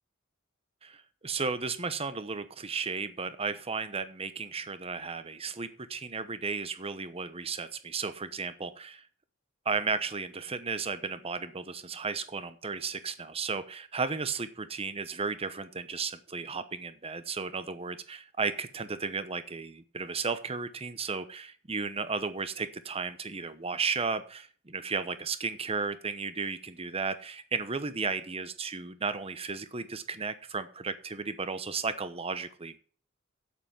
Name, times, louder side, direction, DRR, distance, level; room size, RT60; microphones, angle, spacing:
voice 1, 0.8-9.1 9.6-32.8, right 4 dB, 30° right, 12 dB, 1.0 m, -34 dB
8.1 x 8.0 x 7.4 m, 0.42 s
head